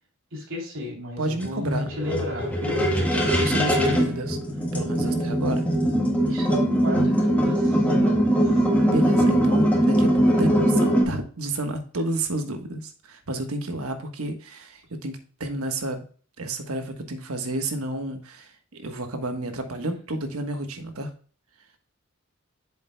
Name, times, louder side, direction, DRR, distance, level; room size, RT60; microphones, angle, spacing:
voice 1, 0.3-2.9 6.2-8.6, left 1 dB, 65° right, -1 dB, 3.1 m, -33 dB
voice 2, 1.2-1.9 2.9-4.4 4.7-5.7 8.8-16.0 16.4-21.1, right 2 dB, 85° right, 6 dB, 1.3 m, -31 dB
sound 1, 1.4-11.0, equal, 5° left, 1.5 m, -21 dB
8.7 x 7.1 x 2.2 m, 0.42 s
head